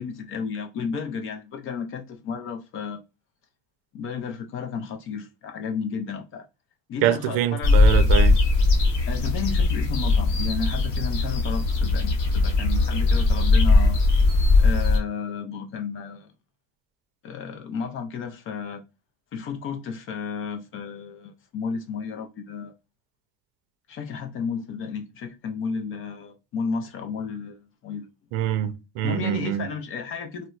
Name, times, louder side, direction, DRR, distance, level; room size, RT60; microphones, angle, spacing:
voice 1, 0.0-3.0 3.9-6.4 6.9-7.8 9.1-14.0 14.6-16.3 17.2-18.8 19.3-22.7 23.9-28.1 29.0-30.5, left 6 dB, 35° left, 0.4 m, -32 dB
voice 2, 7.0-8.4 28.3-29.7, right 11 dB, 80° right, 0.5 m, -25 dB
sound 1, 7.6-15.0, left 3 dB, 55° left, 0.8 m, -20 dB
4.0 x 2.1 x 2.3 m
cardioid pair, 160°, 37 cm